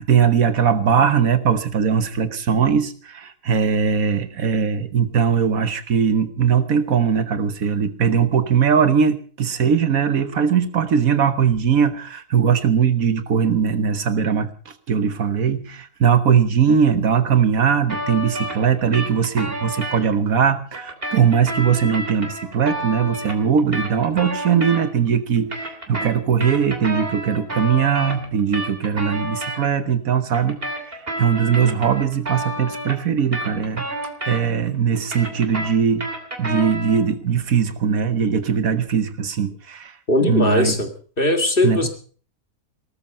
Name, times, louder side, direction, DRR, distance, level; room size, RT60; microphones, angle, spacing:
voice 1, 0.0-33.8 34.2-36.1 36.4-40.8 41.6-41.9, right 7 dB, 70° right, 11 dB, 1.6 m, -20 dB
sound 1, 17.9-20.0 20.7-25.1 25.4-29.6 30.3-34.7 35.0-37.1, right 1 dB, 40° right, 3.3 m, -30 dB
voice 2, 40.1-40.9 41.2-41.9, left 2 dB, 35° left, 7 dB, 2.1 m, -19 dB
18.5 x 13.5 x 5.5 m, 0.43 s
omnidirectional pair, 1.6 m